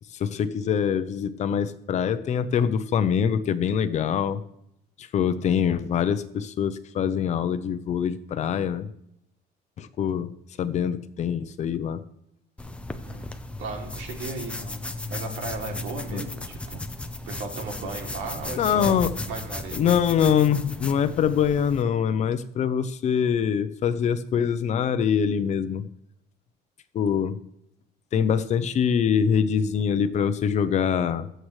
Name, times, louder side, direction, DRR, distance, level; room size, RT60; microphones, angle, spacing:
voice 1, 0.1-4.4 5.0-8.9 9.8-10.3 10.6-12.0 16.1-16.2 18.6-19.1 19.7-25.9 26.9-27.4 28.1-31.3, left 8 dB, 40° left, 11 dB, 0.7 m, -24 dB
sound 1, 12.6-21.8, left 2 dB, 5° left, 0.6 m, -35 dB
voice 2, 13.6-14.8 15.1-16.8 17.3-19.0 19.3-19.8, right 3 dB, 90° right, 2 dB, 2.9 m, -35 dB
23.0 x 7.9 x 3.2 m, 0.78 s
cardioid pair, 170°, 19 cm